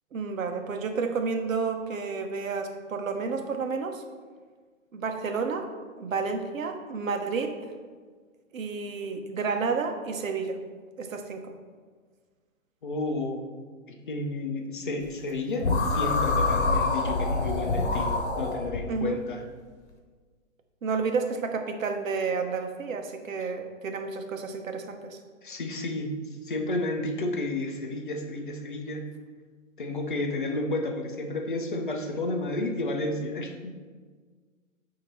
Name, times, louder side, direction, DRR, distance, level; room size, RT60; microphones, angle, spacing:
voice 1, 0.1-4.0 4.9-5.7 6.0-7.5 8.5-10.6 11.0-11.5 18.9-19.2 20.8-25.2, right 4 dB, 75° right, 5 dB, 0.9 m, -30 dB
voice 2, 12.8-13.4 13.9-19.4 23.4-23.5 25.4-26.1 26.4-29.1 29.8-33.7, left 2 dB, 40° left, 3 dB, 0.6 m, -31 dB
sound 1, 15.6-18.8, left 3 dB, 55° left, 1.1 m, -26 dB
8.6 x 2.9 x 4.2 m, 1.5 s
hypercardioid pair, 180°, 40 cm